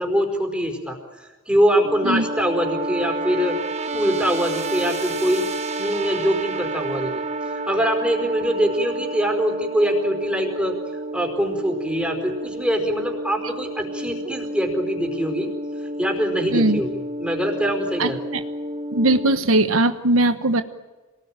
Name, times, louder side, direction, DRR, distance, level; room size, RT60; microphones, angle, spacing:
voice 1, 0.0-3.6 3.9-5.5 5.8-7.2 7.7-10.7 11.1-15.5 16.0-16.9 17.2-18.2, equal, 5° right, 3 dB, 4.8 m, -23 dB
sound 1, 1.7-19.4, right 2 dB, 35° right, 1.3 m, -30 dB
voice 2, 18.9-20.6, right 2 dB, 80° right, 9 dB, 1.2 m, -19 dB
27.5 x 20.0 x 9.0 m, 1.2 s
head